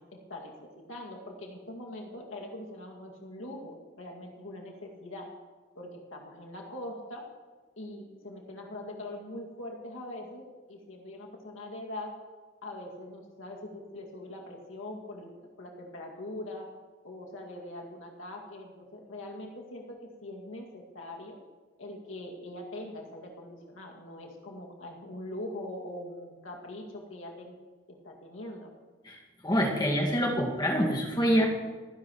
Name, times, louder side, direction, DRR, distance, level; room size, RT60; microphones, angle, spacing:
voice 1, 0.0-5.3 5.7-7.3 7.8-12.2 12.6-16.7 17.0-21.4 21.8-27.5 27.9-28.7, left 1 dB, 90° left, -1 dB, 2.2 m, -42 dB
voice 2, 29.4-31.5, equal, 20° left, -1 dB, 1.8 m, -26 dB
28.0 x 10.5 x 3.1 m, 1.4 s
head